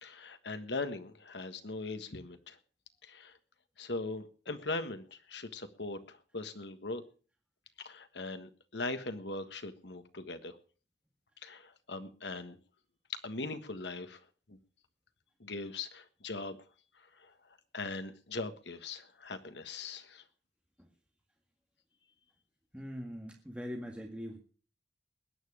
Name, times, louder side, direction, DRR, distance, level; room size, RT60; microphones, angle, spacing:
voice 1, 0.0-2.6 3.0-3.3 3.8-7.0 7.8-10.5 11.4-12.6 13.1-14.2 14.5-14.6 15.4-16.6 17.7-20.2, left 3 dB, 70° left, 9 dB, 1.5 m, -40 dB
voice 2, 22.7-24.4, equal, 5° right, 1 dB, 1.9 m, -42 dB
20.5 x 9.2 x 4.9 m, 0.40 s
head